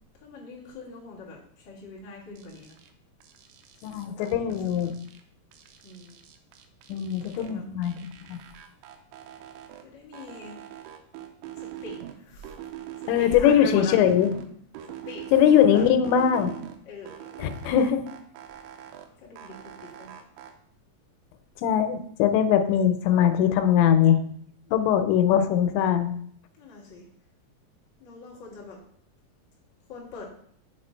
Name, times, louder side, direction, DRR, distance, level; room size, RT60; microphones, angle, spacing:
voice 1, 0.2-2.8 4.0-4.9 5.8-6.2 7.2-7.6 9.8-10.5 11.6-12.5 13.0-14.0 15.0-15.9 16.8-17.3 19.2-20.2 24.7-25.0 26.6-27.0 28.0-28.8 29.9-30.2, left 3 dB, 55° left, -6 dB, 1.2 m, -42 dB
sound 1, 2.4-2.9 3.2-5.2 5.5-7.5 7.8-9.8 10.1-12.2 12.4-14.5 14.8-16.8 17.1-19.1 19.4-20.5, right 12 dB, 90° right, 2.9 m, -43 dB
voice 2, 3.8-4.9 6.9-8.0 8.2-8.4 13.1-14.3 15.3-16.6 17.4-18.0 21.6-24.2 24.7-26.2, left 9 dB, 90° left, 8 dB, 2.9 m, -21 dB
6.5 x 4.3 x 4.3 m, 0.63 s
omnidirectional pair, 5.1 m